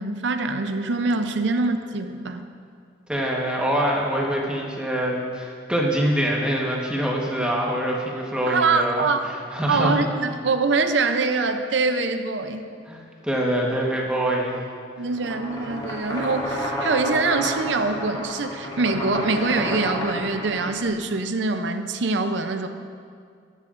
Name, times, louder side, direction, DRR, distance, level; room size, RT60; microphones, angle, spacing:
voice 1, 0.0-2.4 8.5-9.3 9.7-12.7 15.0-22.7, right 3 dB, 65° right, 8 dB, 0.6 m, -24 dB
voice 2, 3.1-9.1 9.5-10.0 12.9-14.6, right 1 dB, 5° right, -3 dB, 1.2 m, -24 dB
sound 1, 15.1-20.9, equal, 25° left, 2.4 m, -30 dB
14.5 x 11.0 x 2.5 m, 2.2 s
head